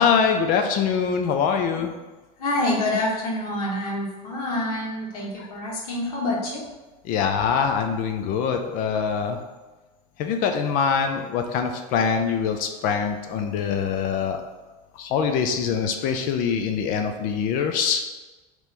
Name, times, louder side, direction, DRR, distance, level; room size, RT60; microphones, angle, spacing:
voice 1, 0.0-1.9 5.4-5.5 7.0-9.4 10.2-14.4 15.0-18.0, left 6 dB, 50° left, 5 dB, 0.5 m, -23 dB
voice 2, 2.4-6.6, left 1 dB, 85° left, -4 dB, 1.5 m, -27 dB
4.1 x 3.0 x 3.4 m, 1.2 s
supercardioid pair, 130°, 19 cm